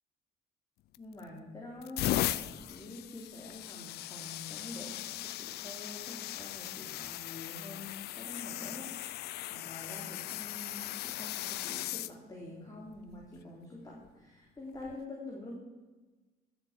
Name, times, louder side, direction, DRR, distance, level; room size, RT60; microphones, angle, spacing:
sound 1, 0.9-1.3 1.8-12.1 13.0-13.2 14.8-14.9, left 15 dB, 75° left, 0.5 m, -38 dB
voice 1, 1.0-15.6, left 2 dB, 20° left, -3 dB, 3.6 m, -46 dB
18.5 x 8.2 x 7.5 m, 1.2 s
cardioid pair, 110°, 17 cm